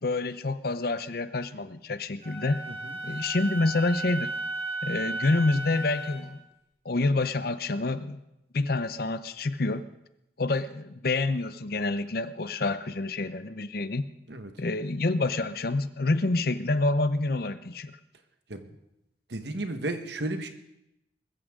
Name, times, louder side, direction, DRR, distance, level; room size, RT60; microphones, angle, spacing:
voice 1, 0.0-2.6 3.0-4.3 4.8-6.4 6.8-8.2 8.5-9.8 10.4-14.1 14.6-17.9, left 2 dB, 55° left, 12 dB, 0.7 m, -27 dB
Wind instrument woodwind instrument, 2.2-6.3, right 2 dB, 35° right, 6.9 m, -35 dB
voice 2, 19.3-20.5, right 2 dB, 70° right, 7 dB, 1.4 m, -34 dB
21.0 x 14.5 x 3.8 m, 0.87 s
head